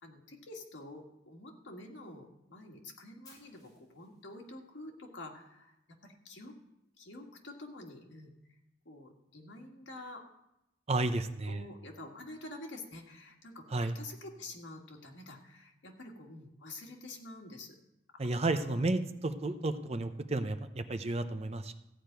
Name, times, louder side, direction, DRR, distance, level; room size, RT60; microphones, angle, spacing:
voice 1, 0.0-6.5 7.0-8.3 8.9-10.2 11.4-17.8 18.1-18.8 19.9-20.0, left 2 dB, 75° left, 1 dB, 1.9 m, -48 dB
Fire, 3.2-5.3, left 2 dB, 20° left, 4.8 m, -62 dB
voice 2, 10.9-11.6 13.7-13.9 18.2-21.7, right 2 dB, 35° right, 9 dB, 0.7 m, -32 dB
15.0 x 5.0 x 9.0 m, 0.88 s
head